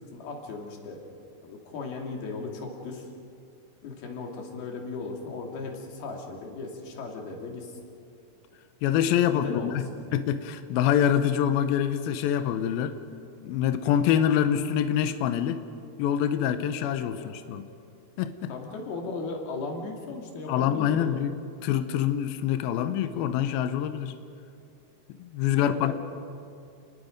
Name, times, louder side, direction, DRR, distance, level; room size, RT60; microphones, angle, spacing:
voice 1, 0.1-1.0 1.4-3.1 3.8-7.8 9.3-10.1 17.1-17.3 18.5-21.2 25.5-25.9, left 3 dB, 60° left, 1 dB, 4.2 m, -37 dB
voice 2, 8.8-9.9 10.1-13.0 13.4-15.6 16.0-17.7 18.2-18.5 20.5-21.4 21.6-24.1 25.2-25.9, left 9 dB, 80° left, 9 dB, 2.2 m, -25 dB
29.5 x 20.5 x 5.2 m, 2.6 s
omnidirectional pair, 5.3 m